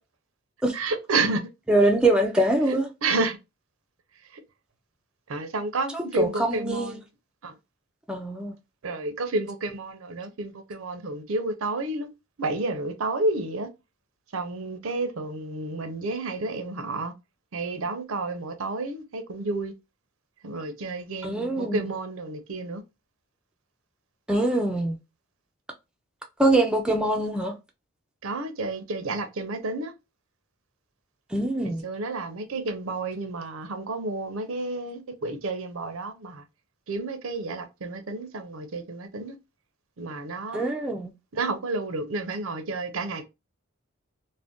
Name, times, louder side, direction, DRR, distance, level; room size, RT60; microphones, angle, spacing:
voice 1, 0.7-1.4 3.0-3.4 5.3-6.9 7.4-7.5 8.8-12.1 12.4-13.7 14.3-17.1 17.5-19.7 20.4-22.8 28.2-29.9 31.8-36.4 36.9-39.4 40.0-40.7 41.3-43.2, right 2 dB, 75° right, 0.6 m, -30 dB
voice 2, 1.7-2.9 5.9-7.0 8.1-8.5 21.2-21.9 24.3-25.0 26.4-27.5 31.3-31.8 40.5-41.1, right 1 dB, 5° right, 0.3 m, -23 dB
2.5 x 2.1 x 3.5 m
head